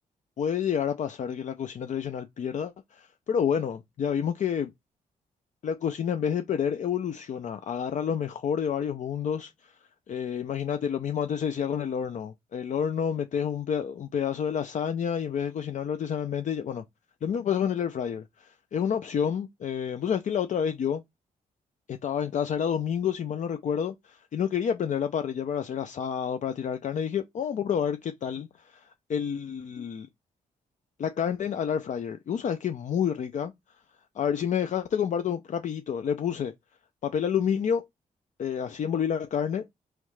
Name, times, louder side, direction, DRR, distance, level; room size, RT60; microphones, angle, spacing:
voice 1, 0.4-4.7 5.6-9.7 10.1-16.8 17.2-21.0 21.9-28.8 29.1-30.1 31.0-33.5 34.2-36.5 37.0-37.8 38.4-39.6, left 8 dB, 55° left, 0.5 m, -29 dB
3.6 x 3.2 x 3.1 m
cardioid pair, 80°, 15 cm